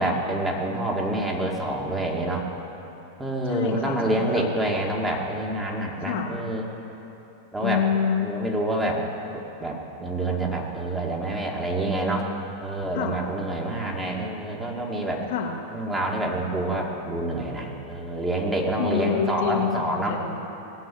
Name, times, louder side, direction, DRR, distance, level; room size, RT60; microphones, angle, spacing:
voice 1, 0.0-2.4 3.2-6.6 7.5-7.8 8.2-9.0 9.3-12.3 12.6-15.2 15.7-20.2, right 1 dB, 10° right, -1 dB, 2.3 m, -27 dB
voice 2, 3.4-4.5 6.0-6.3 7.6-8.4 12.9-13.2 15.3-15.6 18.8-20.4, left 8 dB, 55° left, 1 dB, 1.4 m, -27 dB
18.0 x 8.0 x 8.9 m, 3.0 s
figure-of-eight pair, 90°, 0 cm